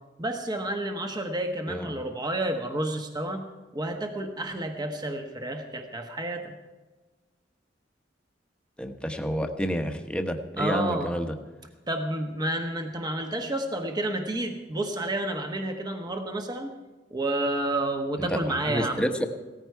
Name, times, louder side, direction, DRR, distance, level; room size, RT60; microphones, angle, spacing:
voice 1, 0.2-3.4 3.7-6.5 10.6-11.1 11.9-16.7 17.1-19.0, right 1 dB, 25° right, 4 dB, 1.1 m, -30 dB
voice 2, 8.8-11.4 18.2-19.3, equal, 5° left, 5 dB, 1.1 m, -29 dB
17.5 x 14.5 x 4.6 m, 1.2 s
head